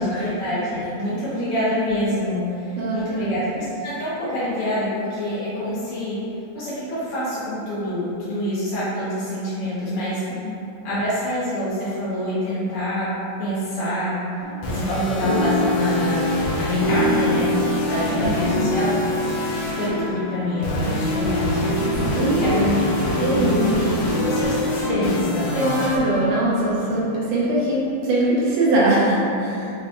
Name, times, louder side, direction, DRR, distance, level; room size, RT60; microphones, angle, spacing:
voice 1, 0.0-6.2 6.5-10.2 10.8-13.1 13.4-14.2 14.7-19.0 19.7-25.8, equal, 45° left, -13 dB, 1.2 m, -26 dB
voice 2, 2.8-3.3 10.3-10.4 18.1-18.3 22.2-22.5 23.2-23.7 25.5-29.7, right 1 dB, 80° right, -7 dB, 1.6 m, -22 dB
sound 1, 14.4-27.2, left 1 dB, 70° left, 1.2 m, -24 dB
5.3 x 2.4 x 2.8 m, 2.7 s
omnidirectional pair, 2.2 m